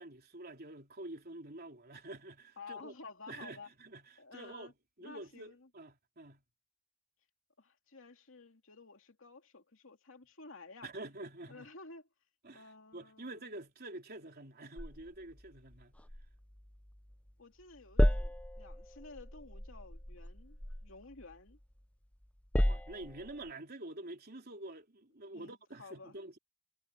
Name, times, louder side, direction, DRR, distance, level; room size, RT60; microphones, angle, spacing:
voice 1, 0.0-2.9 3.3-4.7 5.0-6.4 10.8-11.7 12.4-15.9 22.6-26.4, right 2 dB, 50° right, 3.6 m, -47 dB
voice 2, 2.6-3.7 4.2-4.7 5.0-5.7 7.6-10.9 11.5-12.1 12.5-13.5 17.4-21.6 25.3-26.2, left 3 dB, 65° left, 2.8 m, -53 dB
sound 1, 14.8-17.3 17.6-21.8 22.2-23.5, equal, 5° left, 0.7 m, -34 dB
head